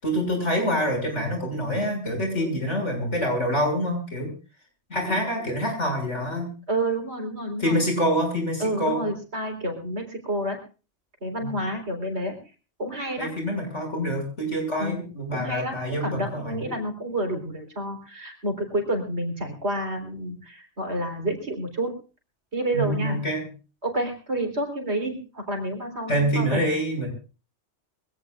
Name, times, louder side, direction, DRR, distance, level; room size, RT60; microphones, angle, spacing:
voice 1, 0.0-4.3 4.9-6.5 7.6-9.1 11.4-11.5 13.2-16.7 22.7-23.4 26.1-27.1, equal, 80° left, 3 dB, 7.1 m, -26 dB
voice 2, 6.7-7.8 8.6-10.6 11.2-12.4 12.8-13.3 14.8-15.0 15.3-21.9 22.5-23.2 23.8-26.6, right 1 dB, 65° right, 4 dB, 4.5 m, -29 dB
24.5 x 17.5 x 2.5 m, 0.35 s
omnidirectional pair, 1.2 m